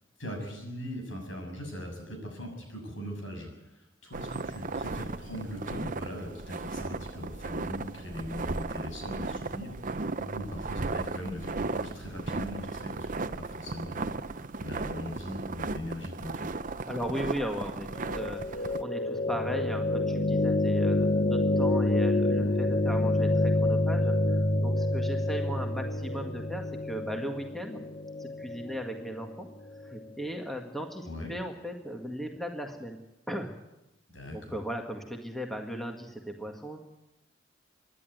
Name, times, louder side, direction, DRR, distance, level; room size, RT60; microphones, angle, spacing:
voice 1, 0.2-14.1 14.6-16.6 31.1-31.3 34.1-34.6, equal, 75° left, 3 dB, 7.1 m, -40 dB
sound 1, 4.1-18.8, right 3 dB, 45° right, 0.7 m, -36 dB
voice 2, 16.9-27.8 28.2-33.0 33.3-33.5 34.3-36.8, equal, ahead, 3 dB, 1.8 m, -37 dB
sound 2, 18.0-30.0, left 1 dB, 45° left, 0.9 m, -28 dB
26.0 x 11.0 x 9.4 m, 0.95 s
head